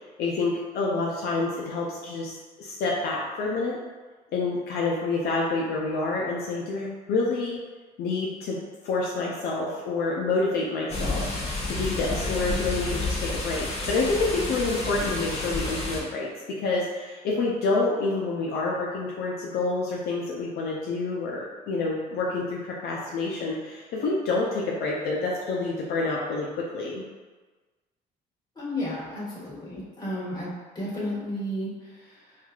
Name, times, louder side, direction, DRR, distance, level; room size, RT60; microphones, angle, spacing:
voice 1, 0.2-3.8 4.3-7.6 8.0-8.6 8.8-11.3 11.7-16.3 16.6-27.0, left 3 dB, 70° left, -3 dB, 0.5 m, -28 dB
sound 1, 10.9-16.0, left 2 dB, 40° left, 0.9 m, -30 dB
voice 2, 28.5-32.4, left 1 dB, 25° left, -8 dB, 1.4 m, -33 dB
4.5 x 2.4 x 2.3 m, 1.3 s
cardioid pair, 110°, 17 cm